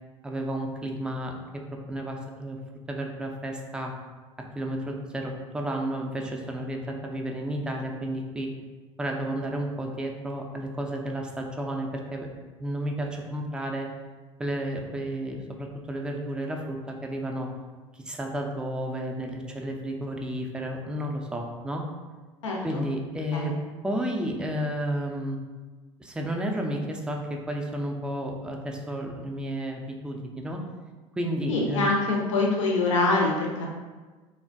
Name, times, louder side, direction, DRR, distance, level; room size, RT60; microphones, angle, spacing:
voice 1, 0.2-1.6 1.9-2.6 2.9-3.9 4.6-8.5 9.0-12.3 12.6-13.9 14.4-17.5 17.9-21.8 22.6-23.5 23.8-25.4 26.0-30.6 31.2-31.9, right 1 dB, 5° right, 1 dB, 0.3 m, -32 dB
voice 2, 22.4-22.8 23.3-23.6 31.5-33.7, left 2 dB, 75° left, -2 dB, 0.5 m, -25 dB
3.2 x 2.1 x 2.5 m, 1.3 s
figure-of-eight pair, 65°, 16 cm